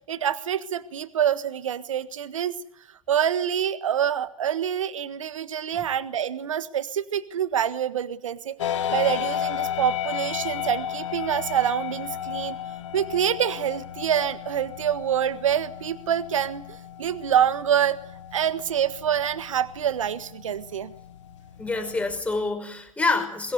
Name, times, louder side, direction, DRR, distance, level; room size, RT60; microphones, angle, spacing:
voice 1, 0.1-2.5 3.1-12.6 12.9-18.0 18.3-20.9, right 9 dB, 70° right, 13 dB, 1.6 m, -26 dB
sound 1, 8.6-22.2, left 10 dB, 60° left, 1.5 m, -34 dB
voice 2, 21.6-23.5, left 3 dB, 5° left, 5 dB, 5.5 m, -26 dB
24.0 x 21.0 x 9.5 m, 0.70 s
figure-of-eight pair, 105°, 17 cm